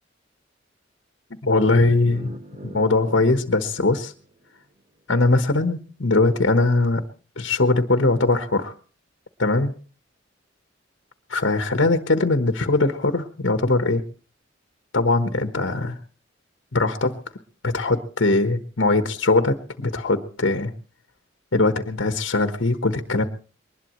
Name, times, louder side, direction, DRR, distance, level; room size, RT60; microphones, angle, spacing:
voice 1, 1.4-2.3 2.6-4.1 5.1-7.0 7.4-8.7 9.4-9.7 11.3-14.0 14.9-16.0 16.7-17.1 17.6-20.7 21.5-23.2, left 2 dB, 80° left, 8 dB, 1.3 m, -21 dB
sound 1, 1.5-4.6, equal, 40° right, 1.4 m, -42 dB
22.0 x 20.0 x 3.1 m, 0.38 s
head